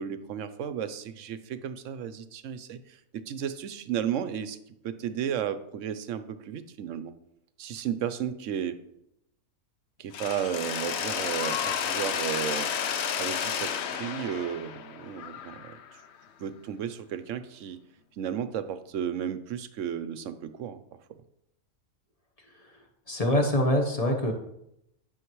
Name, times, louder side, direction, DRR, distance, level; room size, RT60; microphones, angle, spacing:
voice 1, 0.0-4.6 4.8-7.1 7.6-8.8 10.0-12.7 13.2-15.8 16.4-17.8 18.2-20.8 21.1-21.2, right 9 dB, 65° right, 11 dB, 0.9 m, -33 dB
Mechanisms, 10.1-16.0, left 8 dB, 60° left, 0.8 m, -32 dB
voice 2, 23.1-24.3, left 1 dB, 30° left, 2 dB, 1.0 m, -24 dB
11.5 x 6.5 x 3.1 m, 0.79 s
omnidirectional pair, 1.5 m